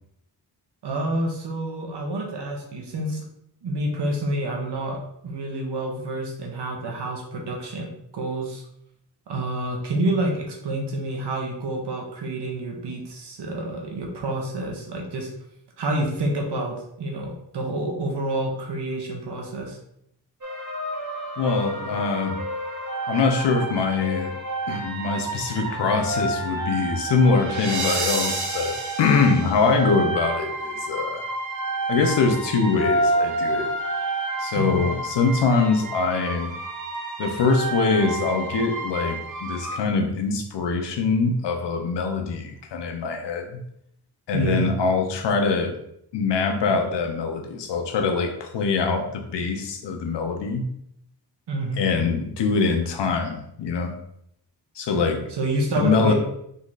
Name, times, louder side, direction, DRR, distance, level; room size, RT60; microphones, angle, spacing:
voice 1, 0.8-3.2 3.6-5.0 5.2-8.6 9.3-15.3 15.8-19.8 34.5-34.8 44.3-44.7 51.5-51.9 55.3-56.1, right 1 dB, 75° right, 0 dB, 1.3 m, -28 dB
sound 1, 20.4-39.8, right 2 dB, 45° right, 1.1 m, -29 dB
voice 2, 21.4-22.4 23.1-24.3 24.7-31.2 31.9-33.7 34.4-36.5 37.2-43.6 44.3-45.8 46.1-50.7 51.8-54.0 54.8-55.2 55.8-56.1, left 4 dB, 85° left, 4 dB, 0.8 m, -23 dB
4.0 x 3.0 x 3.9 m, 0.75 s
wide cardioid pair, 115°, 41 cm